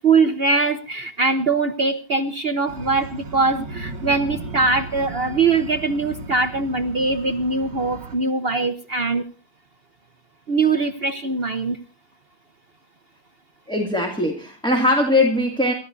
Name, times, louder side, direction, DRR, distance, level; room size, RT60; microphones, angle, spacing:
voice 1, 0.0-9.2 10.5-11.8, right 4 dB, 70° right, 9 dB, 0.5 m, -22 dB
sound 1, 2.7-8.2, right 3 dB, 55° right, 2.6 m, -36 dB
voice 2, 13.7-15.7, left 1 dB, ahead, 2 dB, 2.2 m, -20 dB
29.5 x 13.5 x 2.6 m, 0.33 s
omnidirectional pair, 2.4 m